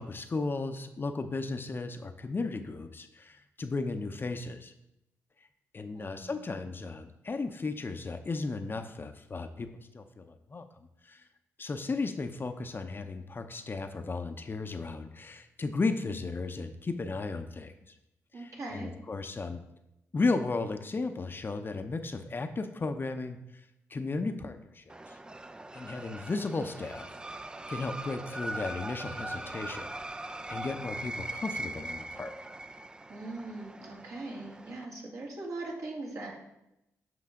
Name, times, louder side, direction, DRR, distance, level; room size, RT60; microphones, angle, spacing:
voice 1, 0.0-4.7 5.7-10.7 11.0-11.2 11.6-18.0 18.3-19.6 20.1-23.6 23.9-25.2 25.7-27.1 27.7-29.9 30.5-32.3, left 3 dB, 35° left, 8 dB, 0.7 m, -35 dB
voice 2, 5.9-6.3 18.3-18.9 33.1-36.4, right 2 dB, 65° right, -2 dB, 2.3 m, -40 dB
sound 1, 24.9-34.9, right 1 dB, 15° right, 0.4 m, -41 dB
7.7 x 5.4 x 3.7 m, 0.87 s
supercardioid pair, 60°, 6 cm